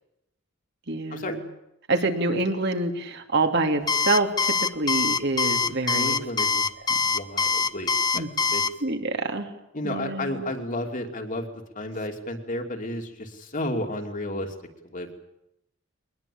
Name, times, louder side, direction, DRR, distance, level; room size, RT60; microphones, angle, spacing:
voice 1, 0.9-1.4 1.9-6.5 6.9-7.0 8.1-8.3 8.8-9.5 9.8-10.5, right 2 dB, 55° right, 5 dB, 2.7 m, -27 dB
Alarm, 3.9-8.7, left 5 dB, 20° left, 0.8 m, -23 dB
voice 2, 5.6-6.7 7.0-8.6 9.7-11.5 11.7-14.5 14.9-15.2, left 1 dB, 40° left, 4 dB, 2.9 m, -32 dB
22.5 x 20.5 x 8.7 m, 0.85 s
head